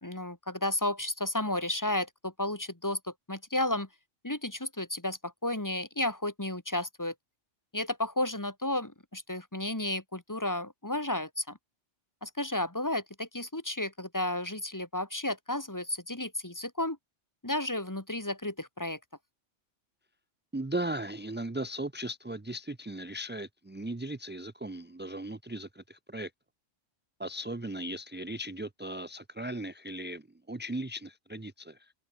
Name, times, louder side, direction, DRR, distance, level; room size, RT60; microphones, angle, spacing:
voice 1, 0.0-3.9 4.2-7.1 7.7-11.6 12.2-17.0 17.4-19.0, left 1 dB, 15° left, 1.7 m, -32 dB
voice 2, 20.5-26.3 27.2-31.9, right 1 dB, 15° right, 0.4 m, -37 dB
omnidirectional pair, 1.3 m